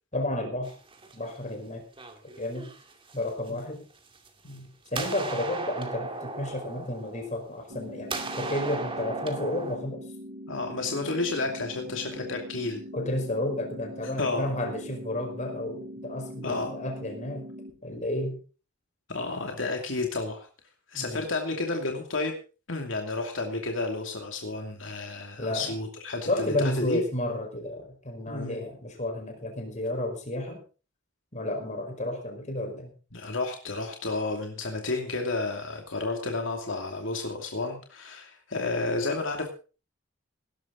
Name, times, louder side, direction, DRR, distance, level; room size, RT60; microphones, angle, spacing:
voice 1, 0.1-0.7 1.1-1.8 2.4-2.7 3.1-3.8 4.9-10.0 12.9-17.5 17.8-18.4 20.9-21.3 25.4-25.8 26.3-30.6 31.3-32.9, left 1 dB, 35° left, 4 dB, 4.9 m, -32 dB
sound 1, 0.6-1.5 2.0-3.5 4.2-4.6 4.9-7.8 8.1-9.8, right 3 dB, 25° right, 2.3 m, -36 dB
sound 2, 7.7-17.7, equal, 75° right, 5.1 m, -42 dB
voice 2, 10.5-12.8 14.2-14.5 16.4-16.7 19.1-20.5 20.9-22.3 22.7-27.0 28.3-28.6 33.1-39.5, left 3 dB, 75° left, 2 dB, 2.6 m, -31 dB
18.5 x 12.0 x 4.0 m, 0.35 s
head